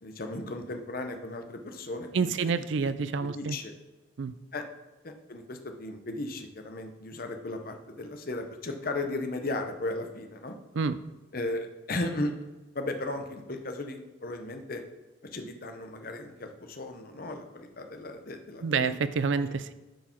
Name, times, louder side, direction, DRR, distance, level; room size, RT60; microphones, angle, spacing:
voice 1, 0.0-2.3 2.7-2.9 3.2-3.7 4.5-4.6 5.0-10.6 11.3-12.3 12.7-14.8 15.3-18.9, left 2 dB, 45° left, 5 dB, 0.8 m, -36 dB
voice 2, 2.1-3.6 4.2-4.3 10.7-11.0 18.6-19.7, right 5 dB, 65° right, 13 dB, 0.4 m, -28 dB
9.0 x 4.7 x 4.5 m, 1.1 s
head